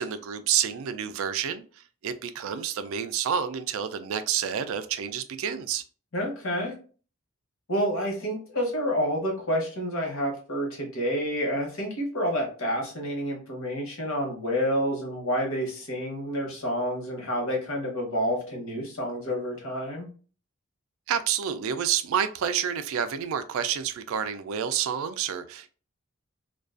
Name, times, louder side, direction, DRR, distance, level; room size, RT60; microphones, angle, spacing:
voice 1, 0.0-5.8 21.1-25.7, right 8 dB, 70° right, 0.3 m, -29 dB
voice 2, 6.1-6.7 7.7-20.1, equal, 65° left, 0.9 m, -29 dB
2.4 x 2.2 x 2.4 m
head